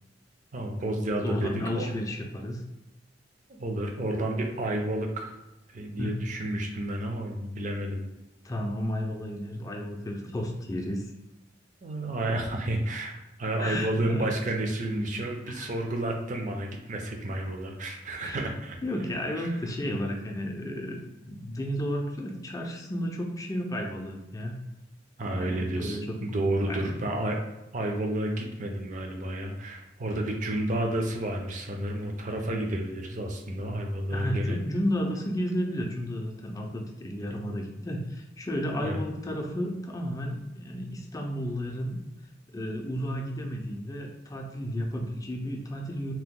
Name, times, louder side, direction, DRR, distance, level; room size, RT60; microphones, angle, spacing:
voice 1, 0.5-1.9 3.5-5.3 5.7-8.1 11.8-13.1 13.4-18.8 19.4-19.5 25.2-27.4 27.7-34.6 38.7-39.0, right 1 dB, 45° right, 2 dB, 0.5 m, -31 dB
voice 2, 1.1-2.6 6.0-6.2 8.4-11.1 13.6-14.3 15.5-15.7 18.2-18.4 18.8-24.6 25.3-26.2 26.7-27.1 34.1-42.0 42.5-46.1, equal, 20° left, 1 dB, 0.4 m, -32 dB
2.8 x 2.1 x 3.6 m, 0.97 s
head